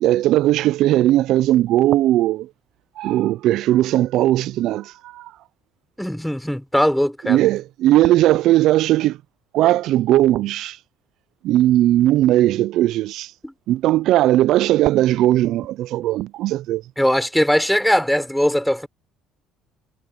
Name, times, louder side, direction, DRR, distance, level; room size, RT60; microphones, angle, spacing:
voice 1, 0.0-2.5 3.0-5.3 7.3-9.2 9.5-10.8 11.4-13.3 13.7-16.8, right 14 dB, 70° right, 0.4 m, -18 dB
voice 2, 6.0-7.4 13.4-13.5 17.0-18.9, equal, ahead, 6.5 m, -20 dB
supercardioid pair, 75°, 0 cm